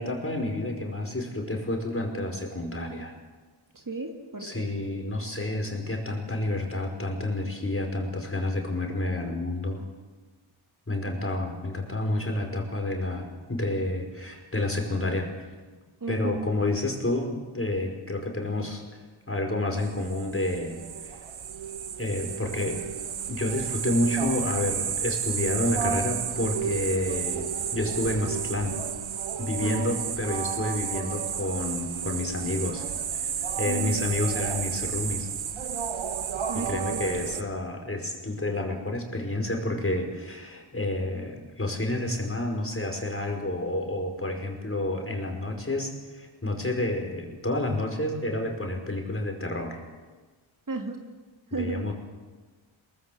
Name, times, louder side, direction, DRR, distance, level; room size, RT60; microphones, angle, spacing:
voice 1, 0.0-3.1 4.4-9.8 10.9-15.3 16.1-18.8 19.3-21.3 22.0-22.8 23.3-28.8 29.4-32.9 33.1-35.3 36.5-49.8 51.5-51.9, left 1 dB, 25° left, 3 dB, 5.2 m, -29 dB
voice 2, 3.7-4.6 16.0-16.5 29.6-30.0 33.7-34.1 36.5-37.1 50.7-51.0 51.5-51.9, right 3 dB, 40° right, 3 dB, 2.8 m, -33 dB
sound 1, 19.8-37.4, right 8 dB, 70° right, 1.1 m, -32 dB
23.0 x 19.5 x 7.8 m, 1.3 s
cardioid pair, 60°, 49 cm